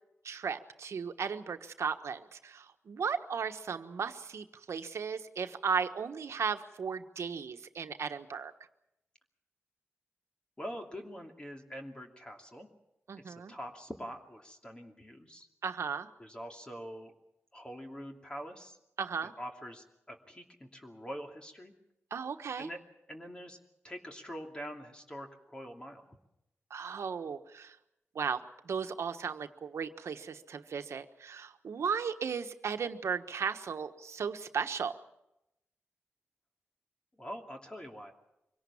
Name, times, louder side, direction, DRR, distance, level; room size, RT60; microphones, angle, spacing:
voice 1, 0.2-8.5 13.1-13.5 15.6-16.1 19.0-19.3 22.1-22.7 26.7-27.7 28.1-28.4 28.6-34.9, right 6 dB, 80° right, 7 dB, 1.3 m, -36 dB
voice 2, 10.6-12.7 13.2-15.5 16.2-17.1 17.5-18.8 19.4-21.7 22.6-22.8 23.1-23.6 23.8-26.2 37.2-38.1, equal, 20° left, 2 dB, 2.7 m, -44 dB
24.5 x 17.5 x 7.2 m, 0.87 s
wide cardioid pair, 85°, 5 cm